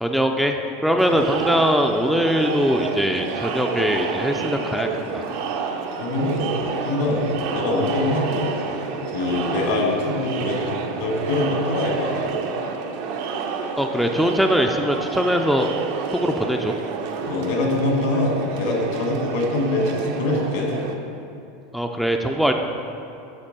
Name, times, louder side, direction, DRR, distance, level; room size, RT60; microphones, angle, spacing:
voice 1, 0.0-4.9 5.1-5.2 13.8-15.7 16.1-16.7 21.7-22.5, equal, ahead, 3 dB, 0.4 m, -21 dB
Crowd, 1.0-20.9, right 5 dB, 65° right, 0.7 m, -29 dB
voice 2, 6.0-6.5 6.8-7.3 7.5-8.5 9.1-12.1 17.2-20.7, left 2 dB, 75° left, 0 dB, 1.8 m, -24 dB
9.8 x 3.4 x 6.6 m, 2.6 s
supercardioid pair, 130°, 0 cm